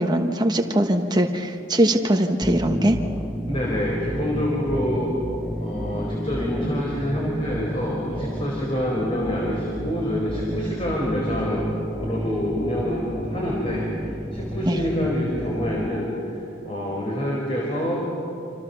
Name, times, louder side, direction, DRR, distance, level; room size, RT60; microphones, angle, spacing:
voice 1, 0.0-3.0 14.7-14.9, right 1 dB, 20° right, 3 dB, 1.3 m, -21 dB
sound 1, 2.4-16.0, equal, ahead, 0.7 m, -31 dB
voice 2, 3.5-5.1 5.6-13.9 14.3-18.1, equal, 25° left, -3 dB, 4.6 m, -27 dB
28.5 x 26.5 x 7.1 m, 2.7 s
head